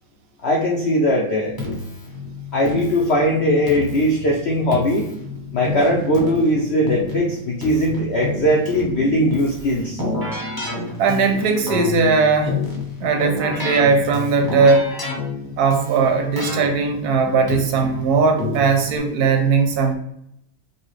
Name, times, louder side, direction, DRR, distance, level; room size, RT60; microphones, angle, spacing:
voice 1, 0.4-1.6 2.5-5.1 5.5-10.0, equal, 80° left, -1 dB, 0.6 m, -19 dB
Keyboard (musical), 1.6-19.0, left 2 dB, 15° left, 0.7 m, -29 dB
voice 2, 11.0-12.6 13.0-14.9 15.6-20.0, right 4 dB, 70° right, 5 dB, 0.9 m, -18 dB
5.5 x 2.3 x 3.1 m, 0.76 s
omnidirectional pair, 1.9 m